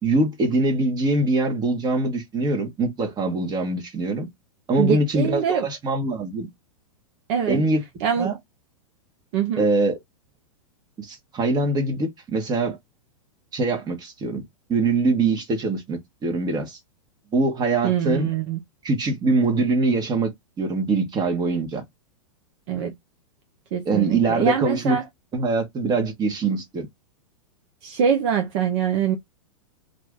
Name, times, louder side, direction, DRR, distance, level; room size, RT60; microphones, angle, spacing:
voice 1, 0.0-4.3 4.7-6.5 7.5-7.8 8.2-8.3 9.6-10.0 11.0-12.8 13.5-14.4 14.7-16.8 17.3-18.3 18.8-20.3 20.6-21.8 23.8-25.0 25.3-26.9, right 3 dB, 25° right, 1.2 m, -23 dB
voice 2, 4.8-5.7 7.3-7.6 8.0-8.3 9.3-9.6 17.8-18.6 22.7-22.9 23.7-25.1 27.8-29.2, right 8 dB, 50° right, 0.7 m, -23 dB
2.6 x 2.5 x 3.5 m
hypercardioid pair, 110°, 18 cm